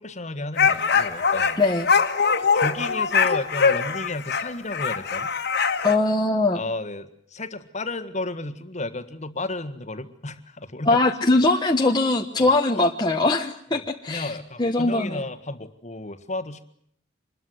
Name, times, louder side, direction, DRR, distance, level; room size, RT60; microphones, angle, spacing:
voice 1, 0.0-1.6 2.5-5.3 6.5-11.0 12.4-12.5 13.7-16.6, left 2 dB, 40° left, 10 dB, 1.7 m, -33 dB
sound 1, 0.6-6.0, left 5 dB, 60° left, 1.8 m, -22 dB
voice 2, 5.8-6.6 10.9-14.3 14.6-15.2, left 2 dB, 25° left, 2 dB, 1.2 m, -21 dB
25.5 x 21.5 x 7.9 m, 0.66 s
head